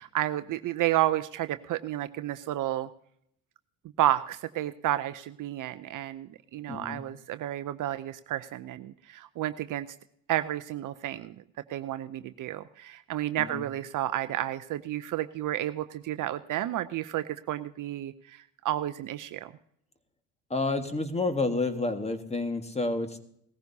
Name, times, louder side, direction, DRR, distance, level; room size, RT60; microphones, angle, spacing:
voice 1, 0.0-2.9 4.0-9.9 10.3-11.3 11.7-19.5, right 13 dB, 50° right, 12 dB, 0.6 m, -31 dB
voice 2, 6.7-7.1 13.4-13.7 20.5-23.2, left 3 dB, 15° left, 8 dB, 1.6 m, -30 dB
18.0 x 15.0 x 2.8 m, 0.71 s
hypercardioid pair, 75°, 41 cm